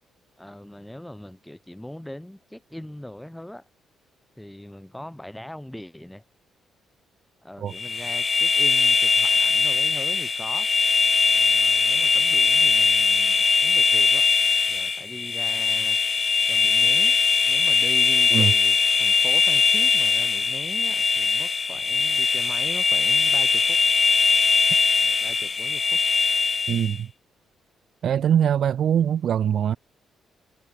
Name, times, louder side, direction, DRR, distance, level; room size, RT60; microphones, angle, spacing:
voice 1, 0.4-3.6 4.4-6.2 7.4-10.7 11.2-14.2 14.7-16.0 16.5-17.2 17.5-23.8 25.0-26.0, left 1 dB, 5° left, 5.0 m, -41 dB
sound 1, 7.7-27.0, left 4 dB, 35° left, 1.0 m, -21 dB
voice 2, 26.7-27.1 28.0-29.8, right 9 dB, 60° right, 0.8 m, -22 dB
cardioid pair, 90°, 0 cm